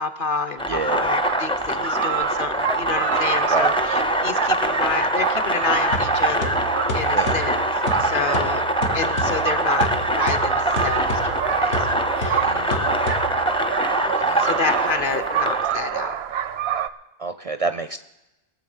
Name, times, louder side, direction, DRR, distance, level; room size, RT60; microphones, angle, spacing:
voice 1, 0.0-6.5 6.9-7.6 8.0-8.6 8.9-9.9 10.1-13.1 14.4-16.1, left 5 dB, 55° left, 7 dB, 1.1 m, -29 dB
sound 1, 0.6-15.8, right 1 dB, 5° left, 0.5 m, -23 dB
voice 2, 0.7-1.1 3.5-3.8 7.1-7.3 12.4-12.8 14.1-14.5 17.2-18.0, right 3 dB, 50° right, 11 dB, 0.4 m, -28 dB
sound 2, 1.2-16.9, right 10 dB, 85° right, 0.9 m, -28 dB
sound 3, 5.9-13.6, equal, 80° left, 1.6 m, -31 dB
21.0 x 7.3 x 5.5 m, 0.98 s
omnidirectional pair, 1.0 m